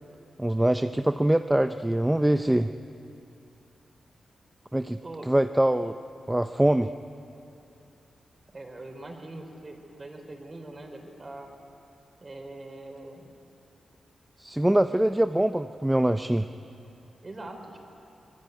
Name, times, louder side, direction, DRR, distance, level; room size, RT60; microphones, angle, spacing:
voice 1, 0.4-2.7 4.7-5.0 5.3-5.9 6.3-6.9 14.4-16.5, right 1 dB, 10° right, 9 dB, 0.6 m, -23 dB
voice 2, 5.0-5.4 8.5-11.5 12.2-13.3 14.9-15.0 17.2-17.8, right 2 dB, 35° right, 4 dB, 4.5 m, -42 dB
25.0 x 20.5 x 9.4 m, 2.7 s
cardioid pair, 85°, 0 cm